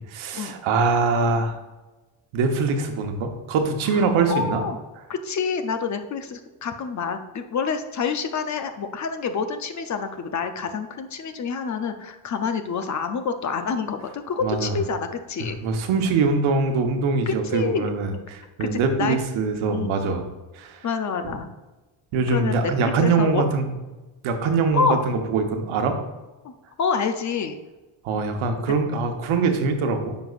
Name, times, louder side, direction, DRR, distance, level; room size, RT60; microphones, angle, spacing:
voice 1, 0.1-1.5 2.3-4.6 14.4-14.7 15.4-20.2 20.6-20.8 22.1-23.7 24.2-26.0 28.0-30.2, right 4 dB, 80° right, 5 dB, 1.1 m, -23 dB
voice 2, 3.9-4.8 5.1-15.6 17.3-17.9 18.6-19.2 19.7-20.0 20.8-21.5 22.3-23.4 24.7-25.0 26.4-26.5 26.8-27.6, left 5 dB, 40° left, 8 dB, 0.6 m, -27 dB
9.5 x 5.3 x 2.4 m, 1.1 s
cardioid pair, 125°, 48 cm